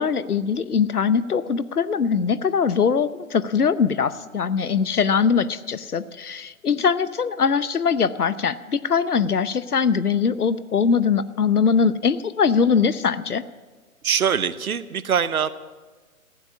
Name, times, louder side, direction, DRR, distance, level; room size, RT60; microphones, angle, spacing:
voice 1, 0.0-13.4, left 6 dB, 85° left, 15 dB, 0.9 m, -21 dB
voice 2, 14.0-15.5, right 7 dB, 75° right, 15 dB, 1.0 m, -23 dB
15.0 x 9.8 x 8.3 m, 1.3 s
figure-of-eight pair, 130°, 44 cm